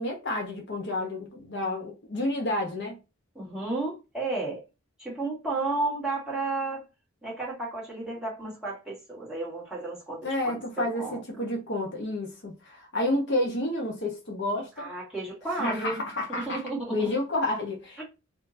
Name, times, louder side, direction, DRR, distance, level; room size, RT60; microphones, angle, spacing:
voice 1, 0.0-3.0 10.2-14.9 15.5-16.6 16.9-18.0, left 1 dB, 55° left, 1.0 m, -30 dB
voice 2, 3.4-4.6 5.0-6.8 7.2-11.5 14.8-16.0 16.3-17.1 18.0-18.1, right 2 dB, 5° right, 1.9 m, -33 dB
4.4 x 2.8 x 2.7 m
head